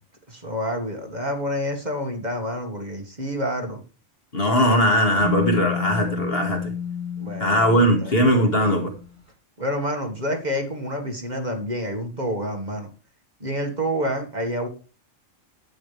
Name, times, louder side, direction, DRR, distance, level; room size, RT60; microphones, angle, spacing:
voice 1, 0.3-3.8 7.2-8.2 9.6-12.9 13.4-14.7, equal, 35° right, 1.9 m, -28 dB
voice 2, 4.3-6.7 7.4-8.9, equal, 50° left, 2.2 m, -20 dB
sound 1, 5.2-9.0, left 6 dB, 60° right, 7.0 m, -31 dB
11.5 x 8.8 x 3.4 m
omnidirectional pair, 1.3 m